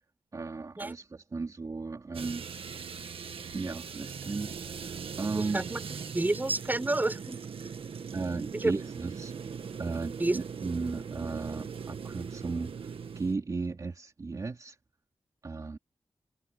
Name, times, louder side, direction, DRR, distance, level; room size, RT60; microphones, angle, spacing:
voice 1, 0.3-2.5 3.5-5.6 8.1-9.3 9.8-14.8 15.4-15.8, right 4 dB, 40° right, 3.2 m, -36 dB
sound 1, 2.1-13.3, right 6 dB, 80° right, 1.7 m, -40 dB
voice 2, 5.3-5.8 6.1-7.4 8.5-8.8 10.2-10.4, right 2 dB, 20° right, 6.0 m, -29 dB
wide cardioid pair, 165°, 9 cm